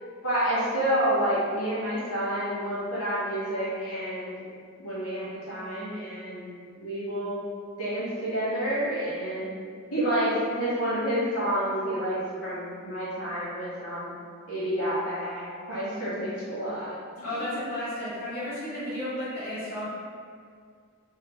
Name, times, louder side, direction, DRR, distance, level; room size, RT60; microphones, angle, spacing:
voice 1, 0.2-4.3 4.8-6.5 6.8-7.4 7.8-9.5 9.9-14.1 14.5-15.4 15.7-17.5, equal, 80° left, -11 dB, 1.1 m, -29 dB
voice 2, 17.2-19.9, left 1 dB, 40° left, -13 dB, 1.0 m, -33 dB
2.9 x 2.0 x 3.0 m, 2.2 s
head